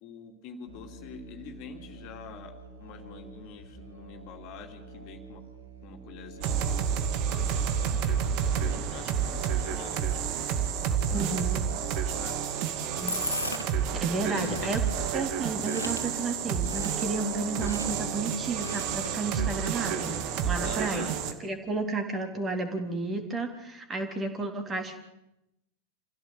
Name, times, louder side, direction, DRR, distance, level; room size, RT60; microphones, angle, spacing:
voice 1, 0.0-5.4 5.8-10.0 10.9-11.4 12.1-12.4 13.8-14.5 20.6-21.1, left 6 dB, 40° left, 4 dB, 2.9 m, -47 dB
Musical instrument, 0.7-7.4, right 3 dB, 70° right, 6.2 m, -47 dB
sound 1, 6.4-21.3, right 8 dB, 40° right, 2.2 m, -30 dB
voice 2, 11.1-11.6 12.9-13.3 14.0-20.2 20.4-21.0 21.4-25.0, right 3 dB, 20° right, 5 dB, 3.6 m, -32 dB
sound 2, 11.9-19.4, left 3 dB, 80° left, 2.0 m, -40 dB
27.5 x 16.0 x 8.2 m, 0.88 s
figure-of-eight pair, 90°, 0 cm